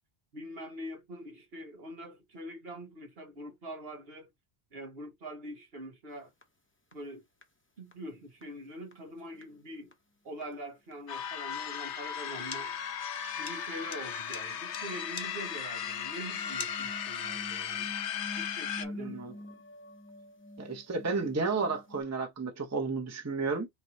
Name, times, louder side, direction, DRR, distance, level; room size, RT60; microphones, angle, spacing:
voice 1, 0.3-4.3 4.7-6.3 6.9-7.2 7.8-9.9 10.2-12.8 13.4-17.9 18.4-19.2, right 1 dB, 60° right, 1.5 m, -44 dB
sound 1, 6.4-6.5 6.9-7.0 7.4-7.5 7.9-8.0 8.4-8.5 8.9-9.0 9.3-9.6 9.9-10.0 10.4-10.5 10.9-11.0 11.2-11.3 13.3-13.4 13.8-22.0, left 1 dB, 15° left, 0.6 m, -47 dB
sound 2, 11.1-18.9, left 8 dB, 85° left, 0.9 m, -36 dB
sound 3, 12.4-17.3, left 5 dB, 45° left, 0.9 m, -45 dB
voice 2, 19.0-19.3 20.6-23.7, right 4 dB, 15° right, 0.8 m, -32 dB
4.2 x 3.4 x 2.7 m
omnidirectional pair, 1.1 m